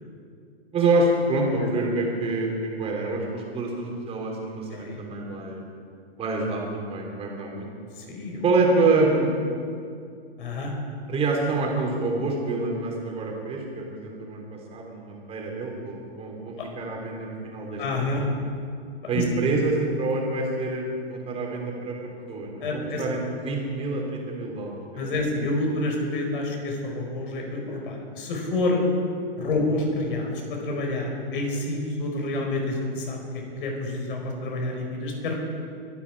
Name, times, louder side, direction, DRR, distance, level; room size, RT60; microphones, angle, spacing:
voice 1, 0.7-2.5 2.8-5.6 6.2-7.7 8.4-9.4 11.1-18.1 19.1-21.9 22.3-25.1, right 3 dB, 20° right, -1 dB, 3.7 m, -26 dB
voice 2, 7.9-8.4 10.4-10.7 16.6-16.7 17.8-18.2 19.1-19.2 22.6-23.0 24.9-28.8 29.4-35.3, left 2 dB, 55° left, 1 dB, 4.9 m, -28 dB
22.5 x 11.0 x 4.9 m, 2.3 s
hypercardioid pair, 125°, 32 cm